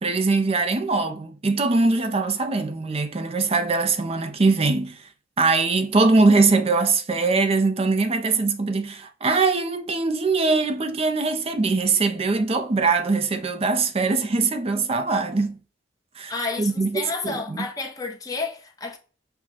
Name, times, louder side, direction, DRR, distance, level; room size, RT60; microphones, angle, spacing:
voice 1, 0.0-5.0 5.4-15.6 16.2-16.3 16.6-17.6, right 3 dB, 30° right, 0.5 m, -22 dB
voice 2, 16.3-19.0, left 3 dB, 20° left, 0.8 m, -30 dB
6.0 x 2.2 x 4.0 m
head